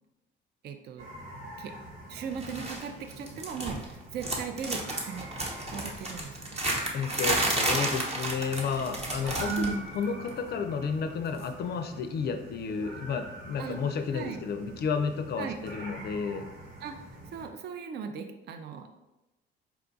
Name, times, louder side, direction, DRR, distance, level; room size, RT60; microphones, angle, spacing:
voice 1, 0.6-1.1 1.6-1.7 2.1-5.3 5.7-6.7 9.5-9.9 13.6-13.8 14.1-14.4 15.4-15.6 16.8-16.9 17.3-18.9, right 6 dB, 50° right, 6 dB, 0.4 m, -37 dB
sound 1, 1.0-17.5, right 1 dB, 85° right, 1.4 m, -45 dB
sound 2, 2.4-2.8 3.1-3.9 4.2-9.8 10.0-10.3 11.4-11.5, right 1 dB, 30° right, 0.9 m, -31 dB
voice 2, 6.9-16.5, left 5 dB, 50° left, 7 dB, 0.4 m, -32 dB
4.6 x 2.3 x 3.8 m, 0.98 s
cardioid pair, 110°, 21 cm